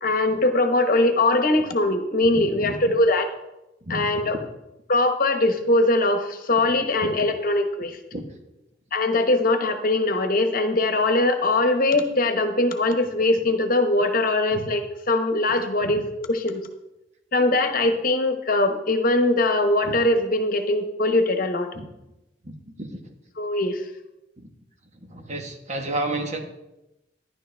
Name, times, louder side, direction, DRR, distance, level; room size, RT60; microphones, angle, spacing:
voice 1, 0.0-3.3 3.9-4.4 4.9-8.0 8.9-16.7 17.3-21.7 23.4-23.8, left 2 dB, 50° left, 6 dB, 1.1 m, -21 dB
voice 2, 2.3-2.8 3.9-4.1 8.1-8.2 14.5-14.6 15.8-15.9 19.8-19.9 21.7-21.9 22.5-23.0 24.4-24.5 25.1-26.4, right 1 dB, 40° right, 4 dB, 1.4 m, -31 dB
12.0 x 11.0 x 3.4 m, 0.92 s
head